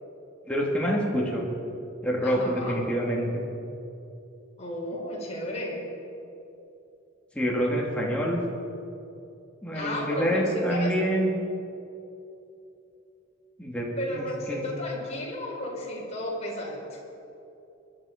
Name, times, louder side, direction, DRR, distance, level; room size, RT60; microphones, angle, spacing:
voice 1, 0.5-1.5 2.0-3.4 7.3-8.4 9.6-11.3 13.6-14.6, equal, 5° left, -3 dB, 2.6 m, -27 dB
voice 2, 2.2-2.8 4.6-5.8 9.7-10.9 14.0-17.0, left 1 dB, 35° left, -3 dB, 4.2 m, -33 dB
22.0 x 11.5 x 5.3 m, 2.8 s
head